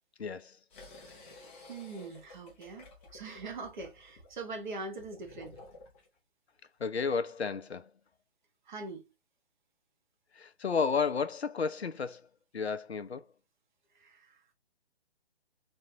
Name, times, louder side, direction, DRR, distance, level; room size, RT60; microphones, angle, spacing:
voice 1, 0.2-0.5 6.8-7.9 10.4-12.2 12.5-13.2, left 5 dB, 80° left, 0.6 m, -32 dB
sound 1, 0.7-6.1, left 2 dB, 10° left, 0.5 m, -53 dB
voice 2, 1.7-5.6 8.7-9.0 14.0-14.4, right 3 dB, 45° right, 1.5 m, -42 dB
4.2 x 3.2 x 2.7 m
figure-of-eight pair, 140°, 32 cm